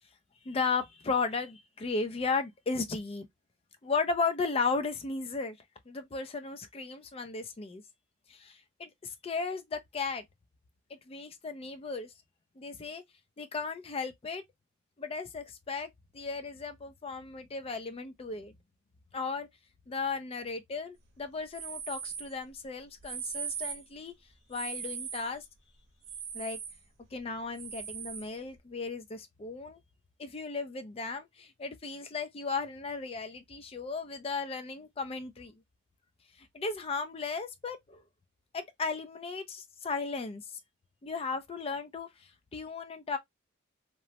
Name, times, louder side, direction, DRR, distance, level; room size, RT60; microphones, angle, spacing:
voice 1, 0.4-3.3 3.8-5.6 5.9-7.8 8.3-10.2 11.1-12.1 12.6-13.0 13.4-14.4 15.0-18.5 19.1-19.5 19.9-24.1 24.5-25.4 26.3-26.6 27.1-29.8 30.2-35.6 36.5-38.0 38.5-40.4 41.0-42.1 42.5-43.2, left 4 dB, 30° left, 0.4 m, -35 dB
sound 1, 21.5-22.3 23.0-23.9 24.5-25.3 26.0-26.8 27.5-28.3, right 7 dB, 55° right, 0.8 m, -39 dB
3.0 x 2.0 x 2.6 m
head